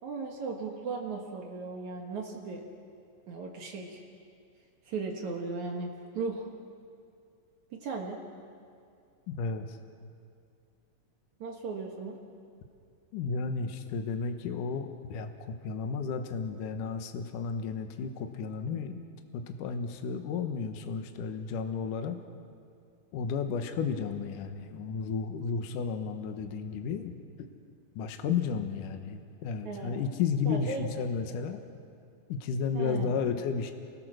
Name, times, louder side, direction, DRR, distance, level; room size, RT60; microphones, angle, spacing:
voice 1, 0.0-2.6 3.3-4.0 4.9-6.5 7.7-8.2 11.4-12.2 29.7-30.0 30.5-30.9 32.7-33.2, right 4 dB, 60° right, 1 dB, 1.9 m, -37 dB
voice 2, 9.3-9.8 13.1-19.0 19.3-22.2 23.1-27.1 27.4-27.5 28.0-31.6 32.3-33.7, left 5 dB, 85° left, 6 dB, 1.8 m, -33 dB
28.5 x 22.5 x 6.4 m, 2.4 s
omnidirectional pair, 5.8 m